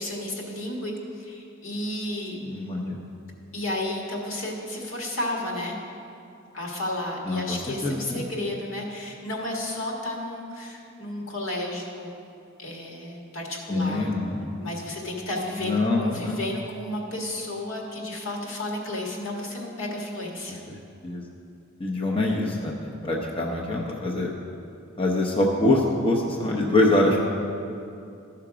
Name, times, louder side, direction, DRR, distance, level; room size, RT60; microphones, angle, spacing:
voice 1, 0.0-2.4 3.5-5.8 6.5-12.1 12.6-14.1 14.6-20.6, left 1 dB, 80° left, -1 dB, 1.7 m, -32 dB
voice 2, 2.4-3.0 7.3-7.6 7.8-8.2 13.7-14.6 15.6-16.4 20.7-20.8 21.0-21.2 21.8-24.3 25.0-27.3, left 2 dB, 25° left, -1 dB, 0.8 m, -24 dB
13.0 x 5.8 x 4.9 m, 2.5 s
head